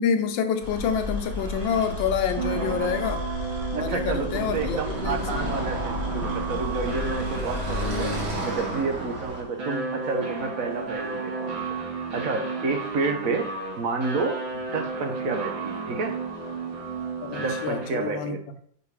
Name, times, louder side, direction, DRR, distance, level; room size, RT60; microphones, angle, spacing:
voice 1, 0.0-3.3 3.7-5.6 17.2-18.4, left 7 dB, 80° left, 7 dB, 1.5 m, -27 dB
sound 1, 0.6-8.3, left 1 dB, 20° right, 1.4 m, -34 dB
sound 2, 1.4-18.1, right 4 dB, 80° right, 2.5 m, -33 dB
voice 2, 3.7-8.1 8.4-13.5 13.8-16.2 17.4-18.4, right 4 dB, 60° right, 5 dB, 1.0 m, -30 dB
Car passing by / Traffic noise roadway noise, 4.3-9.4, equal, 40° right, 1.6 m, -33 dB
4.9 x 4.9 x 4.7 m, 0.63 s
omnidirectional pair, 2.1 m